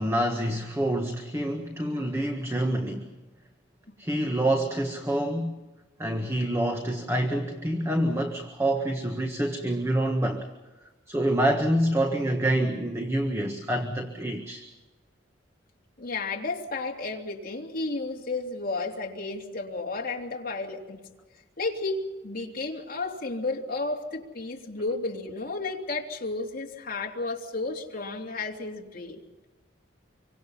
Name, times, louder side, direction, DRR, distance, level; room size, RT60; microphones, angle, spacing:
voice 1, 0.0-3.1 4.0-5.6 6.0-10.5 11.1-14.6, right 1 dB, 15° right, 3 dB, 1.6 m, -27 dB
voice 2, 16.0-21.0 21.6-29.2, left 3 dB, 50° left, -1 dB, 3.2 m, -32 dB
26.5 x 24.5 x 5.8 m, 1.1 s
head